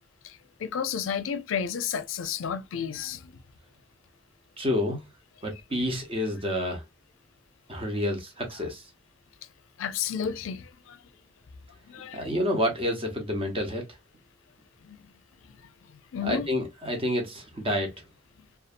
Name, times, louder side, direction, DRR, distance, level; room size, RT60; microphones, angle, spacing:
voice 1, 0.2-3.3 5.8-6.0 7.9-8.0 9.8-11.0 11.9-12.2 14.8-15.0 16.1-16.5, left 7 dB, 80° left, 0.4 m, -32 dB
voice 2, 4.6-5.0 5.4-6.8 7.7-8.8 12.1-13.8 16.2-17.9, left 1 dB, 30° right, 0.8 m, -29 dB
2.6 x 2.3 x 2.5 m
head